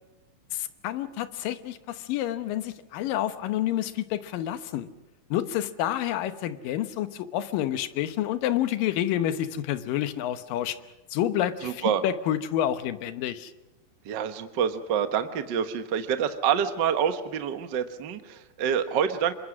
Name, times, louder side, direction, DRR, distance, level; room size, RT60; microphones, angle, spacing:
voice 1, 0.5-4.9 5.3-10.8 11.1-13.5, left 12 dB, 75° left, 11 dB, 2.7 m, -29 dB
voice 2, 11.6-12.0 14.0-19.3, right 8 dB, 80° right, 9 dB, 1.0 m, -27 dB
26.5 x 22.5 x 6.3 m, 1.0 s
omnidirectional pair, 4.0 m